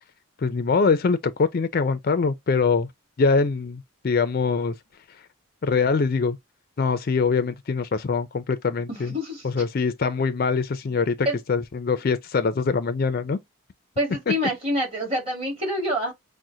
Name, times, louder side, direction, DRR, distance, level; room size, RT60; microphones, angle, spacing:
voice 1, 0.4-2.9 3.2-4.7 5.6-6.4 6.8-9.1 9.4-13.4, left 4 dB, 45° left, 0.4 m, -23 dB
voice 2, 8.9-9.5 11.2-11.4 14.0-16.1, equal, 30° right, 2.4 m, -26 dB
6.1 x 2.1 x 2.7 m
head